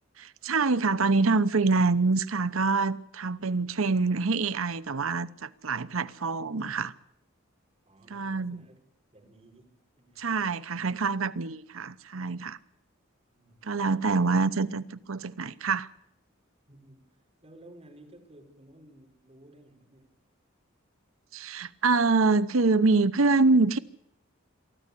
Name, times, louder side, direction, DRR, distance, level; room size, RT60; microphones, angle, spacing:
voice 1, 0.2-6.9 8.1-8.6 10.2-12.6 13.6-15.9 21.3-23.8, right 3 dB, 85° right, 0.9 m, -25 dB
voice 2, 7.8-8.8 9.1-10.4 13.3-14.4 16.7-20.2, right 1 dB, 30° right, 4.8 m, -55 dB
23.0 x 14.5 x 8.4 m
head